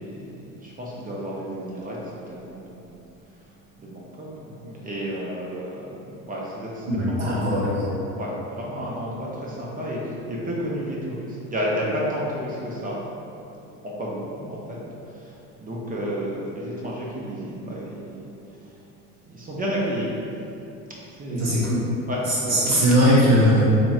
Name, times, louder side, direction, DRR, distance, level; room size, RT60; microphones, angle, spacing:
voice 1, 0.0-2.0 2.3-3.0 3.8-5.9 6.2-7.6 8.2-13.0 13.8-14.8 15.1-15.3 15.6-18.3 19.3-20.1 21.1-21.6 22.1-22.9, equal, 20° right, -5 dB, 0.5 m, -31 dB
voice 2, 6.9-7.9 21.3-21.8 22.2-23.6, equal, 35° right, -8 dB, 0.8 m, -20 dB
3.0 x 2.5 x 2.4 m, 2.8 s
hypercardioid pair, 70°, 41 cm